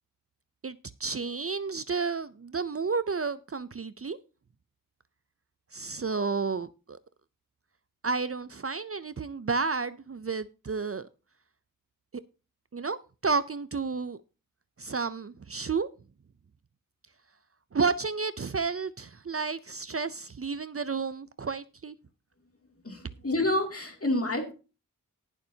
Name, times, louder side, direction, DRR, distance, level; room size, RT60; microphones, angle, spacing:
voice 1, 0.6-4.2 5.7-7.0 8.0-11.1 12.7-13.0 13.2-14.2 14.8-15.9 17.7-22.0, right 4 dB, 40° right, 0.5 m, -31 dB
voice 2, 22.8-24.5, left 1 dB, 40° left, 2.6 m, -28 dB
19.0 x 7.0 x 2.8 m
wide cardioid pair, 65°, 34 cm